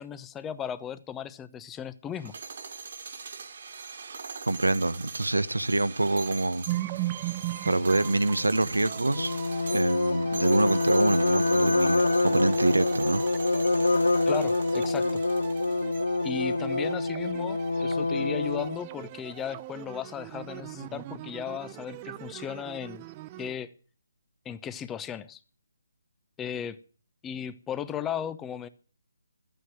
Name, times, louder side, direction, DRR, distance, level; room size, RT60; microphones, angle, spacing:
voice 1, 0.0-2.3 14.3-15.2 16.2-23.0 23.4-23.7 24.4-25.4 26.4-26.8 27.2-28.7, left 9 dB, 10° left, 0.8 m, -36 dB
sound 1, 2.1-16.3, right 5 dB, 55° right, 1.9 m, -40 dB
voice 2, 4.5-6.7 7.6-9.3 9.7-13.2, right 2 dB, 85° right, 1.0 m, -26 dB
sound 2, 6.7-23.5, right 17 dB, 25° right, 0.6 m, -40 dB
sound 3, 9.2-18.8, left 2 dB, 75° left, 0.7 m, -26 dB
13.0 x 9.1 x 9.1 m
figure-of-eight pair, 145°, 0 cm